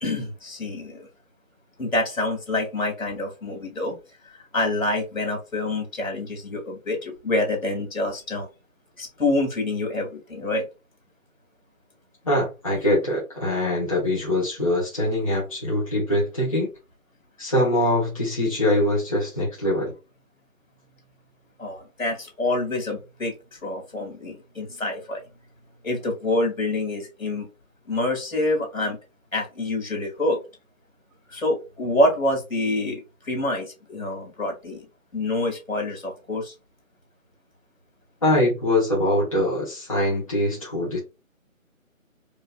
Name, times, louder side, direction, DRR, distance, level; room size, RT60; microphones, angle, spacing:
voice 1, 0.0-1.1 1.8-4.0 4.5-8.5 9.0-10.7 21.6-25.2 25.8-27.5 27.9-29.0 29.3-30.4 31.3-34.8 35.1-36.5, left 2 dB, 70° left, 2 dB, 2.1 m, -26 dB
voice 2, 12.2-16.7 17.4-19.9 38.2-41.0, left 1 dB, 25° left, -6 dB, 1.1 m, -23 dB
4.6 x 2.7 x 2.3 m, 0.27 s
figure-of-eight pair, 170°, 41 cm